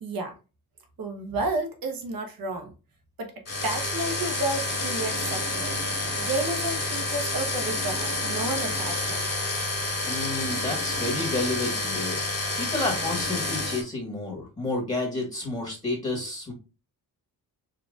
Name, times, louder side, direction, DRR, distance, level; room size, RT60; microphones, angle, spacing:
voice 1, 0.0-0.3 1.0-2.7 3.2-3.3 3.6-5.8 6.2-9.3, right 2 dB, 65° right, 1.2 m, -31 dB
sound 1, 3.5-13.8, left 2 dB, 40° left, 1.9 m, -29 dB
voice 2, 10.0-12.2 12.5-16.5, left 2 dB, 20° left, 1.5 m, -30 dB
4.8 x 3.1 x 2.4 m
cardioid pair, 85°, 38 cm